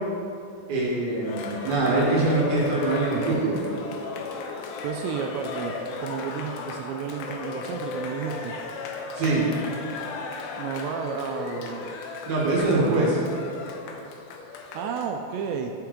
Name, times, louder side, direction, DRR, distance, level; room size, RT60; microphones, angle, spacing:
voice 1, 0.7-3.6 9.1-9.4 12.3-13.1, right 2 dB, 65° right, -5 dB, 2.8 m, -23 dB
Cheering, 1.2-15.1, left 4 dB, 80° left, 2.6 m, -35 dB
voice 2, 4.8-5.7 6.0-8.6 10.6-12.0 12.7-13.1 14.7-15.7, right 7 dB, 85° right, 4 dB, 2.5 m, -32 dB
13.5 x 5.8 x 3.7 m, 2.5 s
omnidirectional pair, 5.5 m